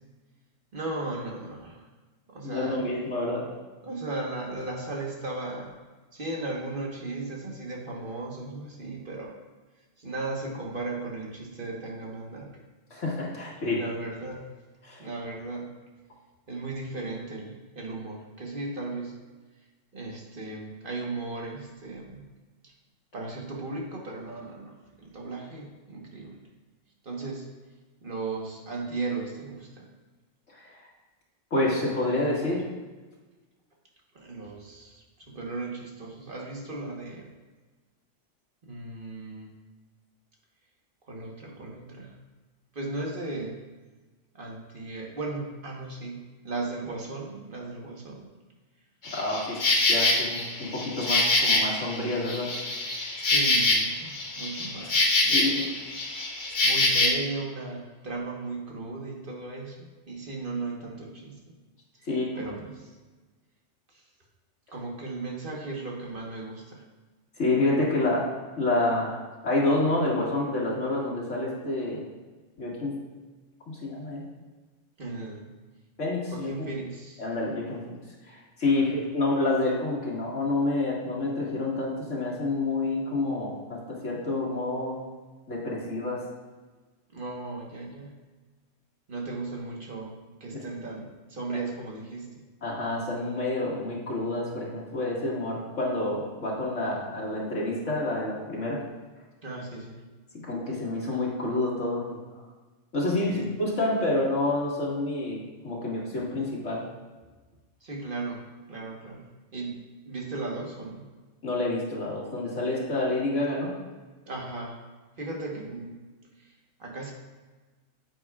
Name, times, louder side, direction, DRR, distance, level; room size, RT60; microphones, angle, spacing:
voice 1, 0.7-1.8 2.3-2.8 3.8-5.7 6.1-9.3 10.0-12.5 13.8-14.5 15.0-15.7 16.5-19.2 19.9-22.2 22.6-22.7 23.1-26.4 27.0-27.5 28.0-29.9 34.1-37.3 38.6-39.5 41.1-42.1 42.7-43.6 44.3-48.3 53.2-55.6 56.6-61.4 61.9-62.1 62.3-62.9 63.9-64.0 64.7-66.8 75.0-75.5 76.3-77.2 78.7-79.0 87.1-88.1 89.1-92.3 99.4-100.0 103.2-103.5 107.8-109.2 109.5-109.8 110.0-111.0 114.3-114.8 115.2-116.0 116.4-117.1, right 3 dB, 45° right, -1 dB, 1.5 m, -36 dB
voice 2, 2.4-3.4 12.9-13.8 14.8-15.0 30.6-30.8 31.5-32.6 49.1-49.6 49.9-52.8 55.3-55.7 62.1-62.3 67.4-68.3 68.6-72.0 72.6-73.0 73.7-74.2 76.0-76.5 77.2-77.9 78.3-85.0 85.5-86.2 90.5-90.6 91.5-91.6 92.6-98.8 100.4-102.2 102.9-106.8 111.4-113.7, left 2 dB, 80° left, -5 dB, 2.3 m, -28 dB
Insect, 49.0-57.1, left 2 dB, 40° left, 1.1 m, -25 dB
9.4 x 7.8 x 2.4 m, 1.3 s
omnidirectional pair, 1.3 m